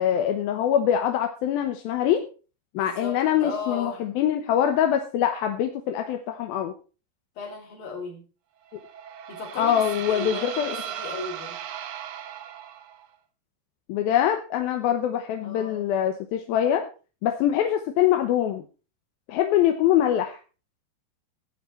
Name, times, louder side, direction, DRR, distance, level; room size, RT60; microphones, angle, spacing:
voice 1, 0.0-2.2 2.7-6.7 9.6-10.8 13.9-16.8 17.2-18.6 19.3-20.4, left 10 dB, 90° left, 5 dB, 2.9 m, -24 dB
voice 2, 2.7-4.0 7.4-8.2 9.3-11.6 15.4-15.9, left 3 dB, 70° left, 1 dB, 5.2 m, -36 dB
sound 1, 8.7-13.1, right 9 dB, 70° right, 1.6 m, -36 dB
15.0 x 8.9 x 4.4 m, 0.35 s
omnidirectional pair, 4.2 m